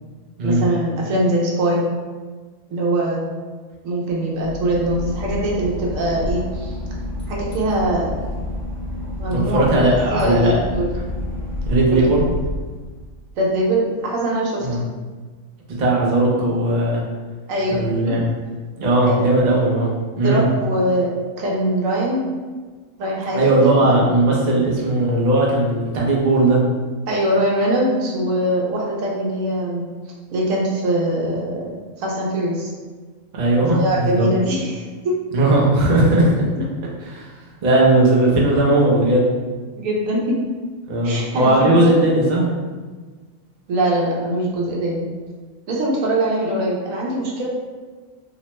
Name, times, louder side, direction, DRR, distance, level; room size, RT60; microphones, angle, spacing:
voice 1, 0.4-1.8 2.7-3.2 3.8-6.7 7.3-8.2 9.2-10.9 11.9-12.0 13.4-14.7 17.5-18.2 19.1-19.3 20.2-22.3 23.0-24.0 27.1-29.9 30.3-32.7 33.7-35.2 39.7-40.4 41.0-41.9 43.7-45.0 45.7-47.5, right 1 dB, 80° right, -3 dB, 1.0 m, -22 dB
Boat Water vehicle / Engine, 4.4-13.3, left 1 dB, 50° left, 0.4 m, -29 dB
voice 2, 9.3-10.6 11.0-11.1 11.6-12.2 14.6-14.8 15.8-17.0 17.7-18.3 18.8-20.4 23.3-26.6 33.3-34.3 35.3-36.5 37.0-37.3 37.6-39.2 40.9-42.5, right 2 dB, 50° right, -4 dB, 0.5 m, -17 dB
2.9 x 2.1 x 2.9 m, 1.4 s
omnidirectional pair, 1.4 m